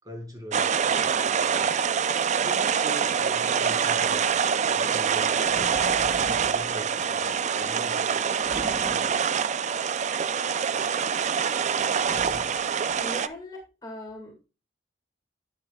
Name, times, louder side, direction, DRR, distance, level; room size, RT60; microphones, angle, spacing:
voice 1, 0.0-1.7 2.4-5.9 6.4-8.2, equal, 20° right, 1 dB, 5.0 m, -42 dB
sound 1, 0.5-13.3, right 7 dB, 40° right, 0.4 m, -25 dB
sound 2, 5.4-6.7 8.4-9.3 11.9-12.6, equal, 5° left, 4.4 m, -40 dB
voice 2, 12.4-14.3, left 1 dB, 20° left, 1 dB, 2.0 m, -41 dB
10.5 x 9.5 x 2.3 m, 0.30 s
head